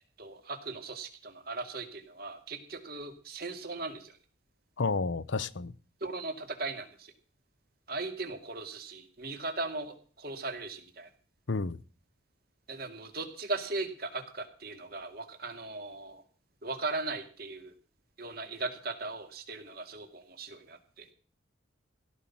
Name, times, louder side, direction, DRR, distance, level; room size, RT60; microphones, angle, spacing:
voice 1, 0.2-4.2 6.0-7.1 7.9-11.1 12.7-16.2 16.6-17.7 18.2-21.1, right 3 dB, 50° right, 6 dB, 2.4 m, -38 dB
voice 2, 4.8-5.7 11.5-11.8, left 4 dB, 75° left, 18 dB, 0.8 m, -30 dB
17.0 x 5.7 x 8.6 m, 0.40 s
head